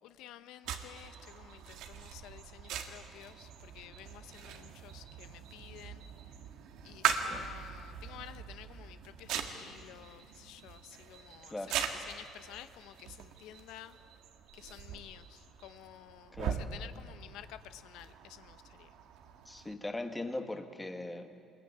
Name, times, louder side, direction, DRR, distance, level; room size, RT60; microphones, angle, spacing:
voice 1, 0.0-6.1 6.8-14.0 14.5-18.9, left 12 dB, 90° left, 11 dB, 0.9 m, -52 dB
sound 1, 0.6-19.8, right 8 dB, 80° right, 1.9 m, -41 dB
voice 2, 7.1-7.4 11.5-11.7 16.3-16.6 19.4-21.4, left 2 dB, 10° left, 6 dB, 1.6 m, -40 dB
25.5 x 21.5 x 9.3 m, 2.6 s
cardioid pair, 155°, 0 cm